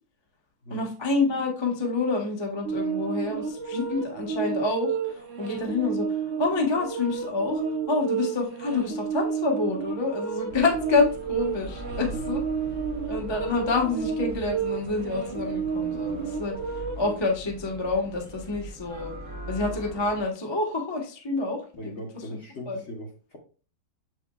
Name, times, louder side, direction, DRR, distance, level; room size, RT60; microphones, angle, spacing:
voice 1, 0.7-12.4 13.1-19.2 19.5-22.0 22.7-22.8, left 3 dB, 25° left, 0 dB, 0.6 m, -28 dB
sound 1, 2.6-17.1, right 6 dB, 60° right, 0.8 m, -31 dB
sound 2, 10.5-20.3, equal, 5° right, 1.8 m, -41 dB
voice 2, 11.8-12.4 21.8-23.4, equal, 45° left, 0 dB, 1.0 m, -39 dB
7.0 x 6.1 x 2.3 m, 0.39 s
omnidirectional pair, 2.2 m